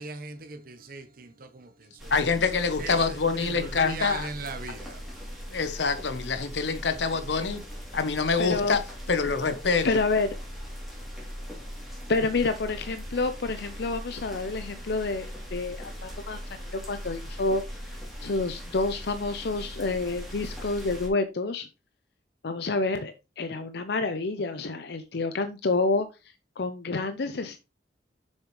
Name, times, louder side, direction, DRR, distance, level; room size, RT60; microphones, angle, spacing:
voice 1, 0.0-1.7 2.0-2.1 2.8-3.2 3.5-5.0, right 4 dB, 55° right, 0.9 m, -39 dB
sound 1, 2.0-21.1, equal, ahead, 3.0 m, -40 dB
voice 2, 2.1-4.3 4.7-4.8 5.5-7.6 7.9-8.8 9.1-9.9, left 4 dB, 85° left, 1.0 m, -26 dB
voice 3, 8.4-8.8 9.8-10.3 12.1-16.4 16.7-21.7 22.4-26.1 26.6-27.6, left 3 dB, 65° left, 0.6 m, -28 dB
7.3 x 6.5 x 3.2 m
head